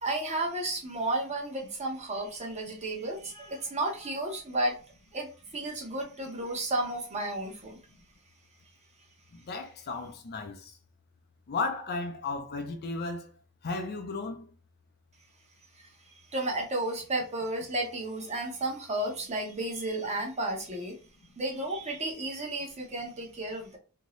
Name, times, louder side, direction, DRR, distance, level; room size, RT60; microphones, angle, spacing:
voice 1, 0.0-4.8 5.1-7.8 15.8-21.0 21.4-23.8, right 1 dB, 30° right, 0.8 m, -33 dB
voice 2, 9.3-10.7 11.5-13.3 13.6-14.5, left 3 dB, 45° left, 0.5 m, -34 dB
2.8 x 2.7 x 3.0 m
head